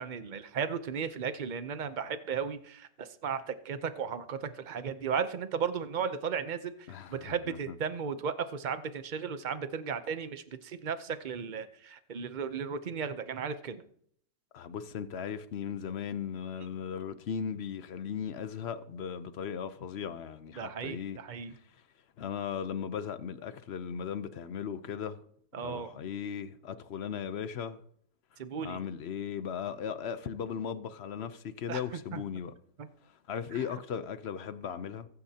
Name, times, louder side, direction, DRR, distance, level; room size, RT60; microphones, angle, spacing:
voice 1, 0.0-13.8 20.6-21.5 25.5-25.9 28.4-28.8 31.7-31.8 32.1-32.2 33.5-33.6, right 6 dB, 85° right, 0.4 m, -35 dB
voice 2, 6.9-7.6 14.5-21.2 21.5-21.6 22.2-25.2 25.6-27.8 28.6-32.5 33.3-35.1, left 7 dB, 60° left, 0.6 m, -37 dB
23.5 x 9.7 x 2.8 m
omnidirectional pair, 1.9 m